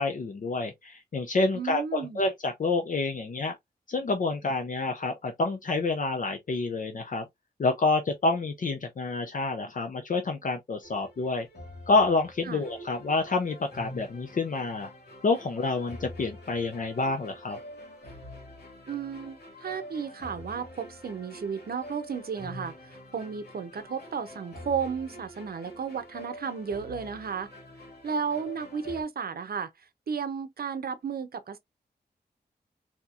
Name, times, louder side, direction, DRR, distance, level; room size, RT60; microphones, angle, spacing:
voice 1, 0.0-3.5 3.9-7.2 7.6-11.5 11.9-14.9 15.2-17.6, left 3 dB, 50° left, 0.6 m, -28 dB
voice 2, 1.5-2.2 12.5-12.6 18.9-27.5 28.0-31.6, right 6 dB, 65° right, 0.7 m, -33 dB
sound 1, 10.8-29.0, left 1 dB, 75° left, 2.0 m, -46 dB
4.3 x 2.9 x 2.4 m
wide cardioid pair, 125°, 17 cm